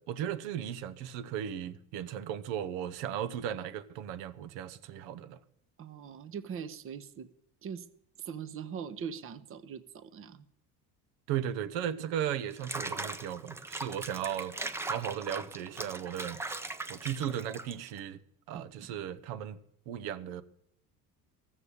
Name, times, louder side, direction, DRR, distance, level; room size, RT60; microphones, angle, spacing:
voice 1, 0.1-5.4 11.3-14.5 14.9-16.4 16.9-18.2 18.5-19.6 19.9-20.4, right 10 dB, 90° right, 0.9 m, -36 dB
voice 2, 5.8-7.3 7.6-7.9 8.2-10.5 18.5-19.0, right 7 dB, 35° right, 0.8 m, -42 dB
Water / Bathtub (filling or washing), 12.5-18.0, right 2 dB, 5° right, 0.4 m, -39 dB
13.5 x 7.4 x 8.2 m
cardioid pair, 135°, 39 cm